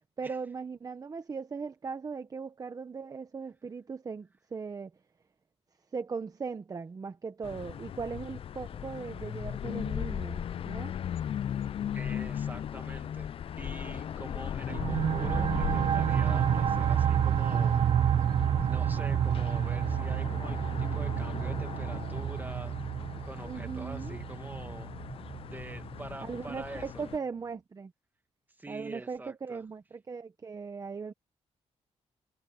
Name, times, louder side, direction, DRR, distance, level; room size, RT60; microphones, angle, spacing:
voice 1, 0.2-4.9 5.9-10.9 23.4-24.2 26.2-27.9 28.7-31.1, right 5 dB, 30° right, 0.9 m, -39 dB
sound 1, 7.4-27.2, left 9 dB, 55° left, 0.4 m, -38 dB
voice 2, 11.9-17.8 18.6-22.8 23.2-24.9 25.5-27.0 28.6-29.6, right 2 dB, 15° right, 1.9 m, -45 dB
sound 2, 14.7-26.0, right 9 dB, 55° right, 0.4 m, -29 dB
cardioid pair, 125°, 12 cm